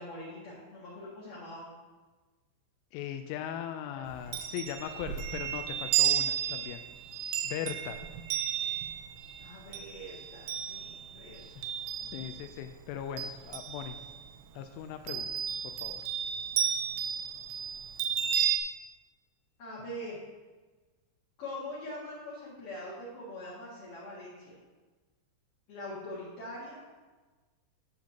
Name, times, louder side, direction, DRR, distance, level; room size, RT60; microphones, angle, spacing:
voice 1, 0.0-1.6 9.4-11.4 12.0-12.4 19.6-20.2 21.4-24.6 25.7-26.8, left 1 dB, 50° left, -9 dB, 2.9 m, -43 dB
voice 2, 2.9-6.8 7.4-8.0 12.1-14.0 14.5-15.3 15.6-16.0, left 10 dB, 85° left, 7 dB, 2.8 m, -39 dB
Chime, 4.1-12.6 12.9-14.3 15.1-18.6, right 9 dB, 80° right, 2.8 m, -33 dB
13.5 x 7.7 x 2.9 m, 1.3 s
omnidirectional pair, 6.0 m